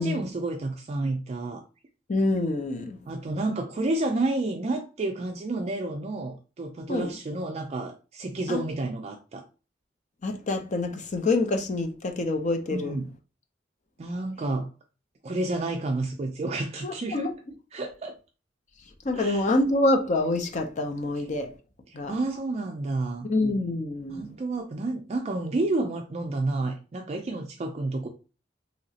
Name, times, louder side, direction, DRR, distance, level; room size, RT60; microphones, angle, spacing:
voice 1, 0.0-1.6 3.1-9.4 12.7-13.1 14.0-14.7 15.2-17.3 17.7-18.2 19.1-19.5 21.9-23.3 24.1-28.1, right 2 dB, 35° right, 0.4 m, -30 dB
voice 2, 2.1-3.0 6.9-7.1 8.5-8.6 10.2-13.0 16.8-17.3 19.0-21.5 21.9-22.2 23.3-24.4, left 2 dB, 40° left, 0.5 m, -26 dB
3.1 x 2.8 x 2.7 m
head